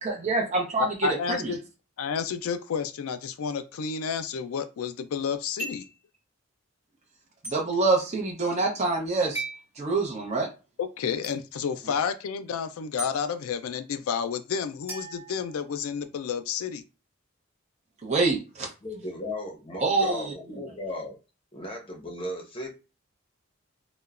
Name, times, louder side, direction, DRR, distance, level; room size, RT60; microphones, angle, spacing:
voice 1, 0.0-0.9 1.4-1.5 7.4-9.4 9.8-10.5 18.0-18.7 19.8-20.6, right 3 dB, 30° right, 0.6 m, -26 dB
voice 2, 0.8-1.6 2.0-5.9 10.8-16.8, left 6 dB, 90° left, 0.4 m, -30 dB
sound 1, 5.6-6.0 7.4-7.6 9.3-9.6 11.2-11.4 13.0-13.1 14.9-16.0, right 1 dB, 10° right, 1.3 m, -37 dB
voice 3, 18.8-21.2 21.5-22.7, left 1 dB, 25° left, 0.7 m, -36 dB
2.9 x 2.1 x 2.4 m
head